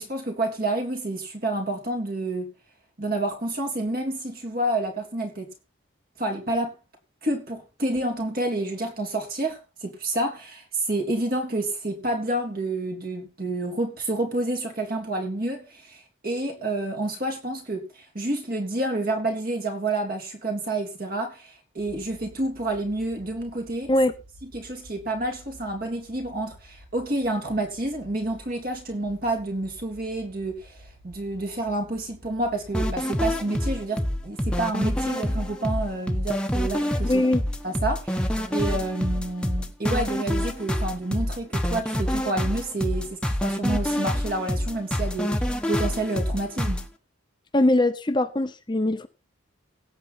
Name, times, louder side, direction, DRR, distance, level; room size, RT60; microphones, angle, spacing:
voice 1, 0.0-2.5 3.0-5.5 6.2-6.8 7.2-23.9 24.4-37.3 37.6-46.8, right 2 dB, 45° right, 3.4 m, -29 dB
sound 1, 21.8-32.7, equal, 60° right, 4.1 m, -51 dB
sound 2, 32.7-46.9, equal, 5° left, 1.1 m, -27 dB
voice 2, 37.0-37.4 47.5-49.1, left 1 dB, 20° left, 0.7 m, -21 dB
17.0 x 7.5 x 4.3 m
head